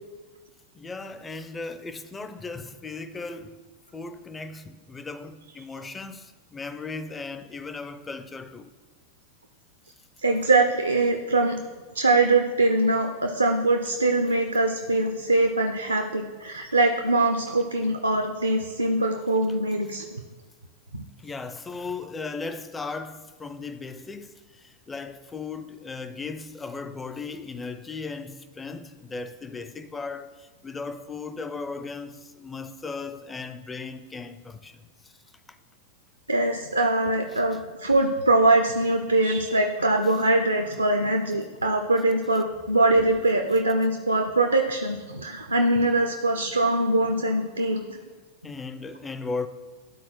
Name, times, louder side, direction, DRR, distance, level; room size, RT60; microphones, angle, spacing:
voice 1, 0.7-3.6 3.9-8.7 21.2-34.8 37.3-37.4 48.4-49.5, left 4 dB, 15° left, 0.4 m, -37 dB
voice 2, 10.2-11.6 11.9-20.1 20.9-21.0 36.3-48.0, right 2 dB, 80° right, 0.4 m, -23 dB
11.5 x 4.2 x 2.9 m
figure-of-eight pair, 90°, 0 cm